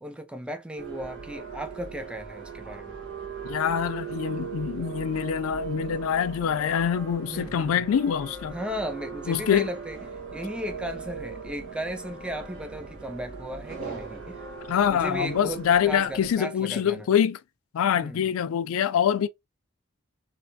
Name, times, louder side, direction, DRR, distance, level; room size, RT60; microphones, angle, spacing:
voice 1, 0.0-3.0 7.3-7.8 8.5-10.0 10.3-14.4 14.9-17.1 17.9-18.3, equal, 5° right, 0.3 m, -36 dB
sound 1, 0.8-16.4, right 5 dB, 90° right, 1.2 m, -39 dB
voice 2, 3.4-8.5 9.3-9.7 14.7-17.4 17.7-19.3, left 8 dB, 80° left, 0.3 m, -25 dB
3.3 x 2.8 x 2.6 m
head